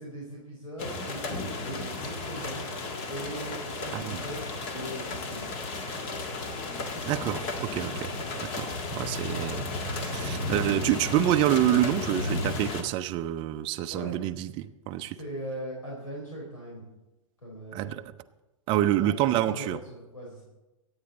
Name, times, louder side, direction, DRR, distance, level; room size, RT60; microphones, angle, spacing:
voice 1, 0.0-2.7 3.0-5.5 8.9-9.1 13.9-14.2 15.1-16.8 17.4-18.0 18.8-20.4, right 1 dB, 80° left, -3 dB, 4.1 m, -40 dB
sound 1, 0.8-12.8, left 2 dB, 35° left, 1.8 m, -33 dB
voice 2, 7.0-8.1 8.4-15.2 17.7-18.0 18.7-19.8, right 13 dB, 30° right, 7 dB, 0.6 m, -27 dB
22.5 x 8.9 x 4.2 m, 1.0 s
figure-of-eight pair, 105°, 17 cm